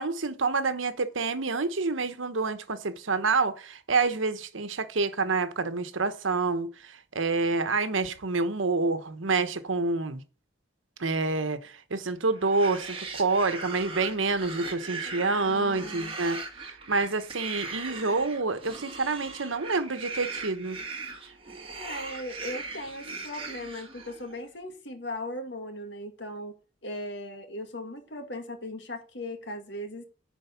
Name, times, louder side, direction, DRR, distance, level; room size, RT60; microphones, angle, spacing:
voice 1, 0.0-10.2 11.0-20.8, right 3 dB, 85° right, 1.0 m, -28 dB
sound 1, 12.3-24.4, right 3 dB, 30° right, 1.8 m, -39 dB
voice 2, 15.4-16.2 21.8-26.5 26.8-30.0, left 1 dB, 60° left, 1.9 m, -38 dB
10.5 x 4.5 x 6.9 m
head